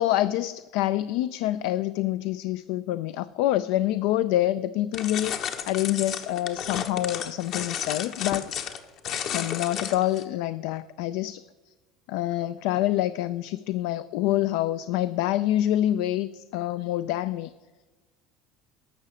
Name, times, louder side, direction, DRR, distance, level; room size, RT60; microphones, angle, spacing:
voice 1, 0.0-8.5 9.3-11.4 12.1-17.5, left 14 dB, 75° left, 14 dB, 0.4 m, -26 dB
sound 1, 4.9-10.2, left 8 dB, 60° left, 1.1 m, -33 dB
11.5 x 6.6 x 8.4 m, 1.3 s
supercardioid pair, 110°, 0 cm